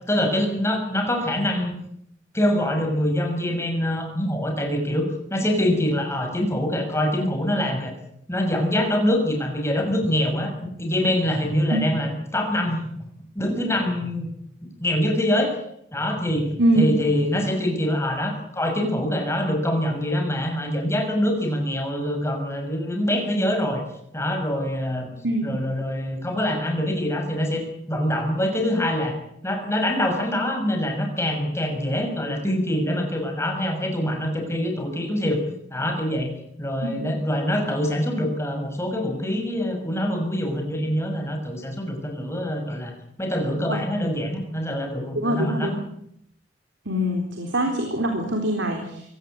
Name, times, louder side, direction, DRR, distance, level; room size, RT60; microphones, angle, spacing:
voice 1, 0.1-1.7 2.3-7.9 8.3-12.8 13.3-14.3 14.6-15.6 15.9-16.5 16.7-23.8 24.1-25.1 25.4-29.2 29.4-35.4 35.7-36.3 36.6-42.9 43.2-45.7, left 1 dB, 15° left, 3 dB, 6.3 m, -24 dB
voice 2, 36.8-37.1 43.6-43.8 45.1-45.8 46.9-49.2, right 1 dB, 85° right, 3 dB, 3.9 m, -24 dB
24.0 x 17.5 x 8.6 m, 0.74 s
head